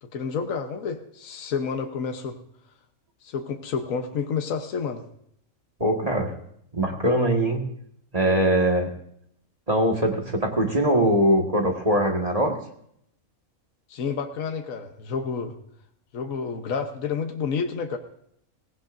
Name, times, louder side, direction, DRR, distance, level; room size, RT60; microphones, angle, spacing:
voice 1, 0.0-2.4 3.2-5.0 13.9-15.5 16.1-18.0, left 5 dB, 70° left, 5 dB, 1.4 m, -29 dB
voice 2, 5.8-6.3 6.7-7.6 8.1-8.9 9.7-12.6, right 1 dB, 25° right, 2 dB, 1.7 m, -22 dB
17.5 x 16.5 x 2.6 m, 0.70 s
omnidirectional pair, 1.5 m